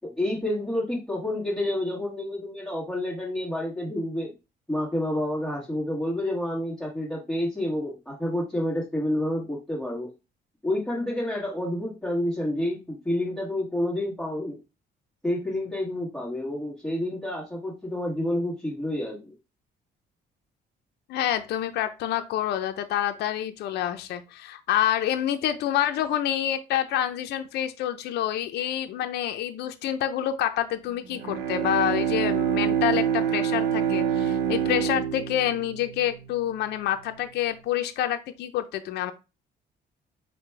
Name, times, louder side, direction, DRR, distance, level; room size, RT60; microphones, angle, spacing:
voice 1, 0.0-4.3 4.7-10.1 10.6-14.6 15.2-19.3, left 1 dB, ahead, -5 dB, 1.3 m, -29 dB
voice 2, 21.1-39.1, left 11 dB, 70° left, 7 dB, 0.6 m, -27 dB
Bowed string instrument, 31.1-36.7, right 9 dB, 80° right, 0.7 m, -26 dB
4.9 x 2.2 x 4.6 m, 0.28 s
cardioid pair, 180°, 18 cm